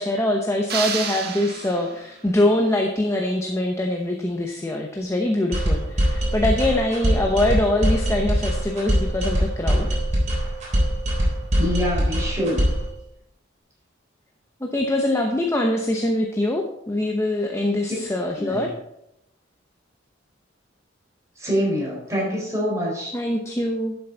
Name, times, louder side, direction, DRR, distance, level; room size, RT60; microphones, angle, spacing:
voice 1, 0.0-10.0 14.6-18.7 23.1-24.0, left 1 dB, 15° left, 2 dB, 0.8 m, -23 dB
sound 1, 0.7-2.2, right 6 dB, 55° right, 1.3 m, -30 dB
sound 2, 5.5-12.9, equal, 40° right, 3.6 m, -22 dB
voice 2, 11.6-12.6 18.3-18.6 21.4-23.2, equal, 15° right, -4 dB, 4.3 m, -25 dB
11.5 x 7.0 x 3.9 m, 0.82 s
head